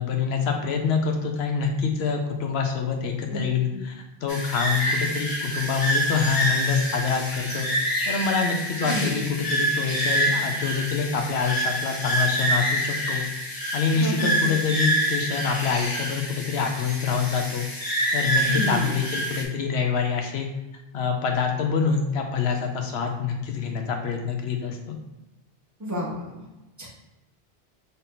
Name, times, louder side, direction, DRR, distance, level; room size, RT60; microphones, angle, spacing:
voice 1, 0.0-7.7 8.1-13.2 13.7-17.7 18.1-20.5 20.9-25.0, left 6 dB, 80° left, 4 dB, 0.9 m, -26 dB
sound 1, 4.3-19.4, right 1 dB, 25° left, 0.7 m, -27 dB
voice 2, 8.8-9.3 13.9-14.5 18.5-18.9 25.8-26.4 26.8-26.9, equal, 20° right, -4 dB, 0.8 m, -30 dB
3.9 x 2.7 x 3.7 m, 1.0 s
omnidirectional pair, 1.1 m